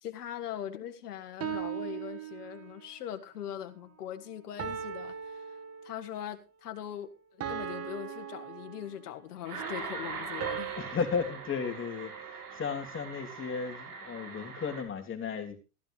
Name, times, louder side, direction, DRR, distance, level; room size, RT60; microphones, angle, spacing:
voice 1, 0.0-5.6 5.8-7.1 7.5-10.7, left 10 dB, 85° left, 1.8 m, -41 dB
sound 1, 1.4-3.0 4.6-6.2 7.4-9.3 10.4-12.7, right 9 dB, 30° right, 1.7 m, -40 dB
sound 2, 9.4-14.8, right 5 dB, 80° right, 6.0 m, -41 dB
voice 2, 10.7-15.6, left 5 dB, 25° left, 3.1 m, -34 dB
15.0 x 13.0 x 3.3 m
hypercardioid pair, 110°, 45 cm